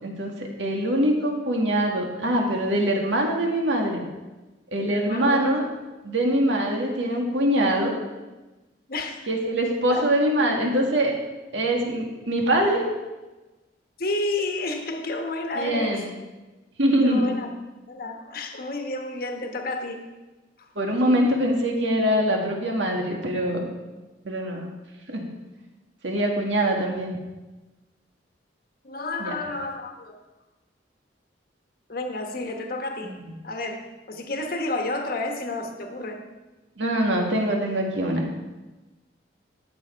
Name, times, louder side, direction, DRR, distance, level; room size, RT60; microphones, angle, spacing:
voice 1, 0.0-4.0 4.7-5.7 6.0-8.0 9.3-11.2 11.5-12.8 15.6-16.1 16.8-17.3 20.8-23.7 24.2-24.7 25.1-25.2 26.0-27.2 29.2-29.4 36.8-38.3, right 1 dB, 90° right, 1 dB, 2.0 m, -23 dB
voice 2, 4.8-5.5 8.9-9.3 9.9-10.1 14.0-16.0 17.0-17.5 17.9-20.0 20.6-21.0 28.8-30.1 31.9-33.1 33.4-36.2, left 2 dB, 55° left, 4 dB, 1.2 m, -31 dB
13.5 x 7.9 x 4.6 m, 1.1 s
head